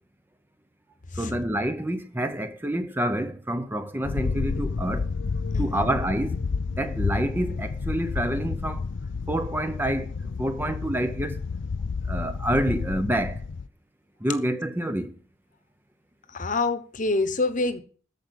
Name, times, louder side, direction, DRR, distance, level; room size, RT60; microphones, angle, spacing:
voice 1, 1.2-5.1 5.6-6.4 6.8-8.8 9.3-11.4 12.1-13.4 14.2-15.2, right 1 dB, 10° right, 0.7 m, -28 dB
sound 1, 4.0-13.7, left 4 dB, 65° left, 0.5 m, -30 dB
voice 2, 5.5-5.9 16.3-17.8, left 3 dB, 40° left, 1.1 m, -27 dB
14.0 x 5.1 x 8.0 m
head